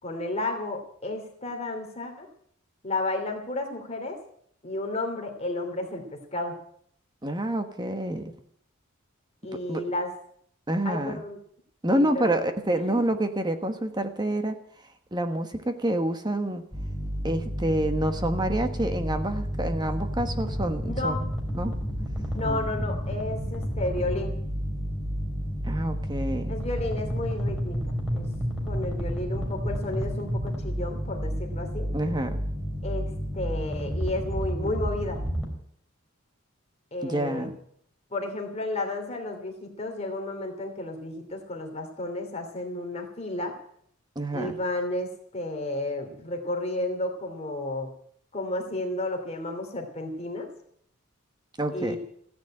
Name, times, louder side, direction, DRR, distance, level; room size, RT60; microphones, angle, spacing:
voice 1, 0.0-2.3 2.8-4.2 4.6-6.5 9.4-10.1 10.8-11.4 11.9-12.4 12.7-13.0 20.9-21.2 22.3-24.3 26.5-28.3 28.6-31.9 32.8-35.2 36.9-37.5 38.1-43.6 44.3-47.9 48.3-50.5 51.7-52.0, left 2 dB, 30° left, 3 dB, 2.8 m, -32 dB
voice 2, 7.2-8.3 9.7-9.8 10.7-11.2 11.8-14.6 15.1-16.6 17.2-21.3 21.5-21.7 22.4-22.7 25.6-26.6 31.9-32.4 37.0-37.6 44.1-44.5 51.6-52.0, right 1 dB, 20° right, 8 dB, 1.2 m, -28 dB
sound 1, 16.7-35.5, equal, 5° right, 3.9 m, -31 dB
15.5 x 10.5 x 8.7 m, 0.67 s
head